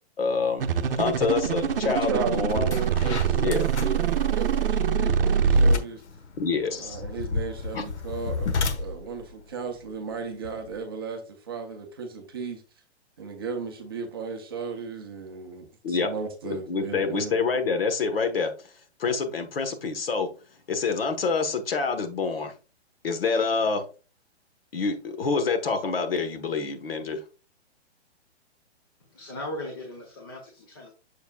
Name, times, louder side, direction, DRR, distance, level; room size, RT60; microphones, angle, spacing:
voice 1, 0.2-0.6 1.0-2.7 3.3-3.7 6.4-7.0 7.7-7.8 15.8-16.1 16.4-18.5 19.0-20.3 20.7-22.5 23.0-23.8 24.7-27.2, left 4 dB, 60° left, 1.2 m, -27 dB
sound 1, 0.6-5.8, right 6 dB, 55° right, 0.8 m, -23 dB
voice 2, 1.8-6.0 6.7-12.6 13.2-17.4, right 5 dB, 20° right, 0.7 m, -35 dB
sound 2, 2.0-2.1 2.5-10.8, left 4 dB, 80° left, 1.3 m, -34 dB
voice 3, 29.1-30.9, left 1 dB, 20° left, 0.7 m, -38 dB
7.0 x 6.8 x 2.3 m
hypercardioid pair, 175°, 33 cm